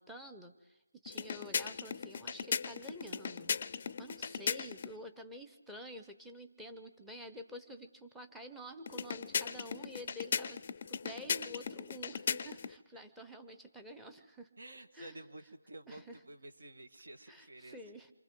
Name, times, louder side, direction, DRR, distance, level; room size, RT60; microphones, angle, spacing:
voice 1, 0.0-10.6 10.9-14.5 14.9-15.2 15.9-16.2 17.3-18.1, equal, 5° right, 7 dB, 0.9 m, -49 dB
sound 1, 1.1-4.9 8.9-12.8, left 6 dB, 35° left, 0.6 m, -38 dB
voice 2, 14.6-17.8, right 1 dB, 65° right, 8 dB, 1.8 m, -51 dB
28.0 x 25.5 x 3.8 m, 1.2 s
figure-of-eight pair, 160°, 0 cm